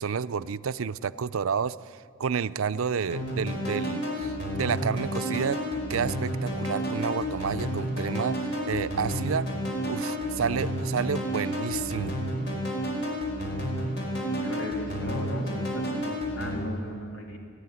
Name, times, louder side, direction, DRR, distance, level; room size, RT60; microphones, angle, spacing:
voice 1, 0.0-5.6 5.9-8.4 8.7-9.5 9.9-12.2, right 6 dB, 80° right, 15 dB, 0.5 m, -30 dB
sound 1, 3.1-16.6, equal, 55° left, 5.1 m, -31 dB
voice 2, 14.2-16.0 16.3-17.4, left 1 dB, 70° left, 2 dB, 3.0 m, -37 dB
29.0 x 10.0 x 9.8 m, 2.2 s
head